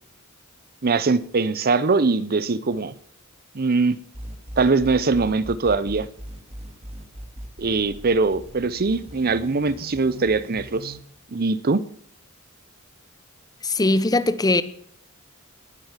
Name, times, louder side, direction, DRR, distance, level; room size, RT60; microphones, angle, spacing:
voice 1, 0.8-2.9 3.5-4.0 4.6-6.1 7.6-11.0 11.3-11.8, right 4 dB, 45° right, 0.7 m, -22 dB
sound 1, 4.1-11.0, equal, 30° right, 2.6 m, -39 dB
voice 2, 13.6-14.6, left 2 dB, 20° left, 0.8 m, -20 dB
19.0 x 9.3 x 7.3 m
head